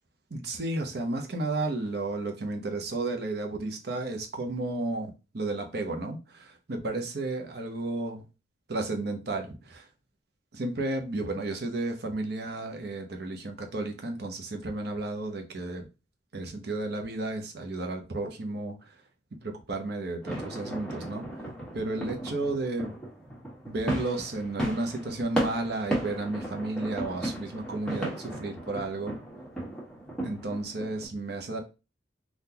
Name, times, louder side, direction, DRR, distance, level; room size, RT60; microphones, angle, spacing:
voice 1, 0.3-8.2 8.7-9.9 10.5-15.9 16.3-18.9 19.4-21.3 21.7-22.9 23.7-29.2 30.2-31.6, right 2 dB, 60° right, 0.8 m, -33 dB
sound 1, 20.2-31.1, right 1 dB, 5° left, 1.1 m, -35 dB
3.8 x 2.5 x 2.8 m
head